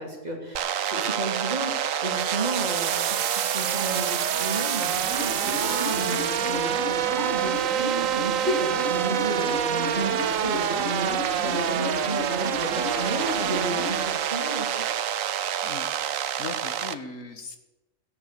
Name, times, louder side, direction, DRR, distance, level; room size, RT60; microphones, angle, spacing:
voice 1, 0.0-14.8, right 2 dB, 30° right, 0 dB, 3.2 m, -33 dB
sound 1, 0.6-17.0, right 9 dB, 85° right, 1.1 m, -27 dB
Applause, 2.7-15.0, right 6 dB, 50° right, 1.1 m, -39 dB
sound 2, 4.8-14.1, left 1 dB, 50° left, 6.5 m, -35 dB
voice 2, 15.6-17.6, left 4 dB, 80° left, 6 dB, 2.0 m, -39 dB
15.5 x 10.5 x 6.9 m, 1.1 s
omnidirectional pair, 1.4 m